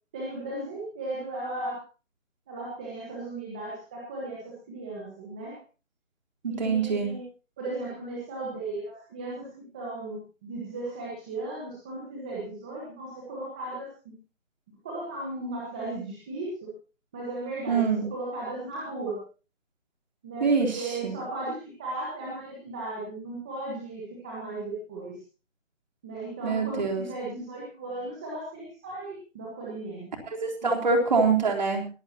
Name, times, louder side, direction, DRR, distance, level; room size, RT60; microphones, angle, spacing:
voice 1, 0.1-1.8 2.5-5.6 6.5-7.2 7.6-14.1 14.8-16.7 17.1-19.2 20.2-25.2 26.0-30.1 30.6-30.7, right 2 dB, 5° right, -5 dB, 1.3 m, -36 dB
voice 2, 6.4-7.1 17.7-18.0 20.4-21.2 26.4-27.1 30.3-31.9, right 4 dB, 35° right, 2 dB, 3.7 m, -25 dB
21.0 x 15.5 x 2.9 m, 0.33 s
figure-of-eight pair, 170°, 38 cm